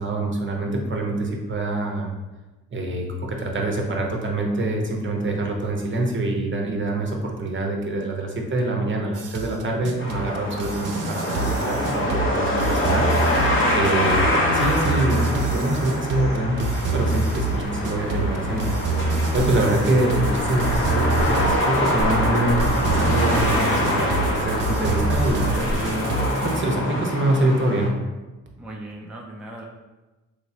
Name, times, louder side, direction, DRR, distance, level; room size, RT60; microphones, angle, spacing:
voice 1, 0.0-2.1 2.7-13.3 13.7-16.6 16.9-26.0 26.4-27.9, right 2 dB, 35° right, 1 dB, 0.8 m, -25 dB
sound 1, 9.2-26.6, right 3 dB, 70° right, 0.5 m, -26 dB
sound 2, 10.0-27.9, left 1 dB, 40° left, 0.9 m, -25 dB
sound 3, 16.7-25.8, left 2 dB, 70° left, 0.6 m, -33 dB
voice 2, 28.6-29.6, right 1 dB, 5° right, -1 dB, 0.4 m, -38 dB
3.1 x 3.0 x 2.7 m, 1.1 s
supercardioid pair, 50°, 33 cm